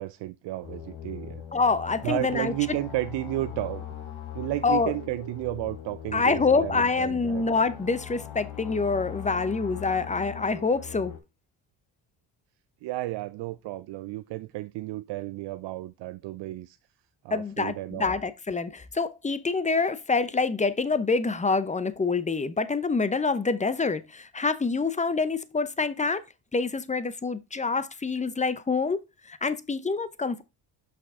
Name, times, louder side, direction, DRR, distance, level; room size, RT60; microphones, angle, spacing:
voice 1, 0.0-1.4 2.0-3.9 4.3-7.4 12.8-16.8 17.2-18.2, right 17 dB, 60° right, 0.5 m, -32 dB
sound 1, 0.6-11.2, left 10 dB, 70° left, 1.7 m, -40 dB
voice 2, 1.5-2.5 4.6-4.9 6.1-11.1 17.3-26.2 26.5-29.0 29.3-30.4, left 4 dB, 15° left, 0.6 m, -26 dB
6.0 x 5.8 x 3.6 m
supercardioid pair, 80°, 49 cm